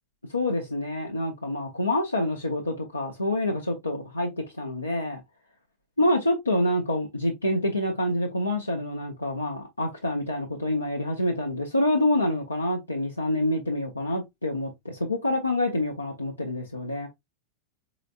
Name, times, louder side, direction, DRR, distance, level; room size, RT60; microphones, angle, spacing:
voice 1, 0.3-4.3 4.6-5.2 6.0-17.1, left 1 dB, 85° left, 0.7 m, -27 dB
4.1 x 3.0 x 2.4 m
figure-of-eight pair, 90°, 0 cm